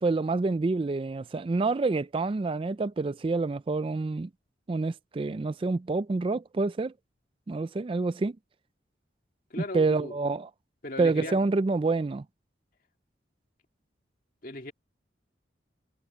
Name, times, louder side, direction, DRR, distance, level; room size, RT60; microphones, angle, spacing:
voice 1, 0.0-4.3 4.7-6.9 7.5-8.4 9.7-10.5 11.0-12.2, right 3 dB, 30° right, 0.3 m, -27 dB
voice 2, 9.5-10.2 10.8-11.4 14.4-14.7, left 2 dB, 50° left, 2.2 m, -37 dB
head